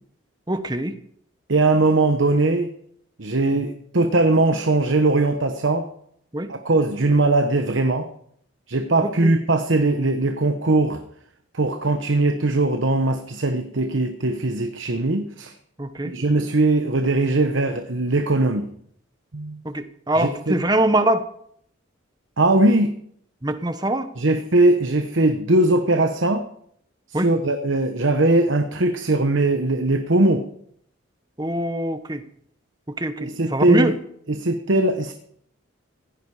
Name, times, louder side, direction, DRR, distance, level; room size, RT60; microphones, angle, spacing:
voice 1, 0.5-0.9 6.3-6.5 9.2-9.3 15.8-16.1 19.6-21.2 23.4-24.1 27.1-27.3 31.4-32.2 33.0-33.9, right 1 dB, 20° right, 10 dB, 1.1 m, -23 dB
voice 2, 1.5-2.7 3.2-5.9 6.5-8.1 8.7-11.0 11.5-15.5 16.0-18.7 19.3-19.6 20.2-20.6 22.4-22.9 24.2-26.5 27.1-30.5 33.2-33.9 34.3-35.1, right 2 dB, 70° right, 7 dB, 1.1 m, -20 dB
16.5 x 14.0 x 4.9 m, 0.68 s
head